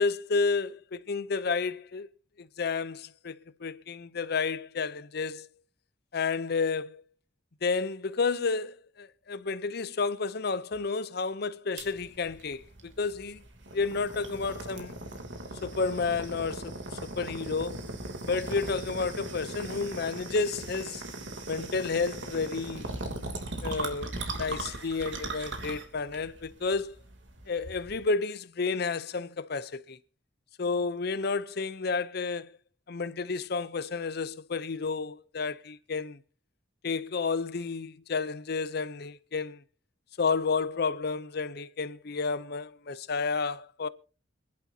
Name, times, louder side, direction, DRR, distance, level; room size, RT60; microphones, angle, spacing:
voice 1, 0.0-2.1 2.4-5.5 6.1-7.0 7.6-13.4 13.7-15.0 15.6-17.8 18.2-21.0 21.5-22.9 23.6-27.0 27.5-30.0 30.6-32.5 32.9-36.2 36.8-39.6 40.2-43.9, left 4 dB, 60° left, 0.6 m, -31 dB
sound 1, 11.8-28.0, right 2 dB, 85° right, 2.9 m, -39 dB
26.5 x 11.0 x 2.8 m
head